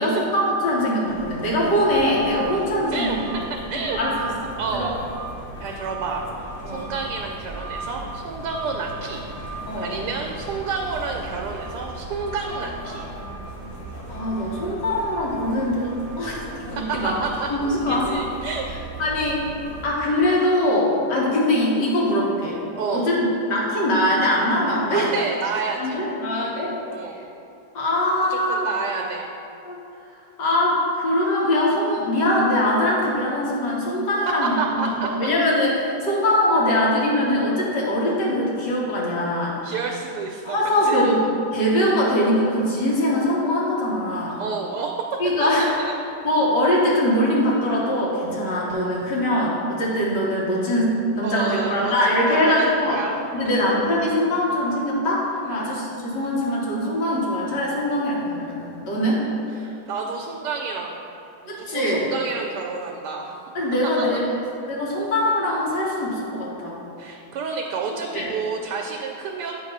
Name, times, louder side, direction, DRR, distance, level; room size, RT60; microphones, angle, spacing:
voice 1, 0.0-3.3 3.7-4.9 5.6-5.7 6.6-6.8 9.7-9.9 14.1-17.1 17.5-18.1 19.0-19.5 19.8-22.6 22.9-25.1 25.8-26.8 27.1-27.2 27.7-28.8 29.6-29.8 30.4-39.6 40.5-41.2 41.5-44.4 45.2-45.7 46.2-53.0 53.3-59.2 61.5-62.1 63.6-64.3 64.7-66.8 68.1-68.3, left 1 dB, 85° left, -5 dB, 1.9 m, -22 dB
sound 1, 1.1-19.9, right 2 dB, 30° left, 0.7 m, -36 dB
voice 2, 4.6-5.0 5.6-13.1 16.8-18.7 22.8-23.1 24.9-26.0 26.9-27.2 28.3-29.3 34.3-35.1 39.6-40.6 40.8-41.1 44.4-44.9 45.4-45.9 51.2-53.1 55.5-55.8 59.6-61.0 61.4-63.4 64.0-64.1 67.0-69.5, right 4 dB, 80° right, 1 dB, 1.1 m, -29 dB
8.4 x 3.0 x 5.3 m, 2.7 s
omnidirectional pair, 1.8 m